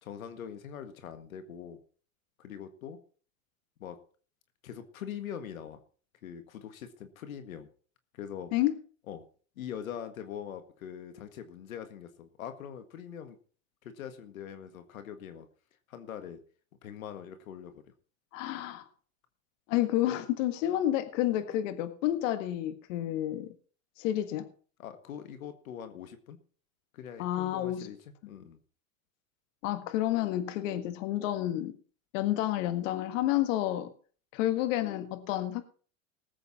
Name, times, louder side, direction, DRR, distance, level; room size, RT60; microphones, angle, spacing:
voice 1, 0.0-1.8 2.4-3.0 3.8-4.0 4.6-5.8 6.2-7.7 8.1-8.5 9.1-9.2 9.6-13.4 13.8-15.5 15.9-16.4 16.8-17.8 24.8-26.4 26.9-28.0 28.3-28.6, left 9 dB, 90° left, 1.7 m, -42 dB
voice 2, 18.3-18.8 19.7-23.5 24.0-24.5 27.2-27.9 28.2-28.3 29.6-31.7 32.1-33.9 34.3-35.6, left 13 dB, 65° left, 1.7 m, -30 dB
19.5 x 8.1 x 4.2 m
supercardioid pair, 115°, 40 cm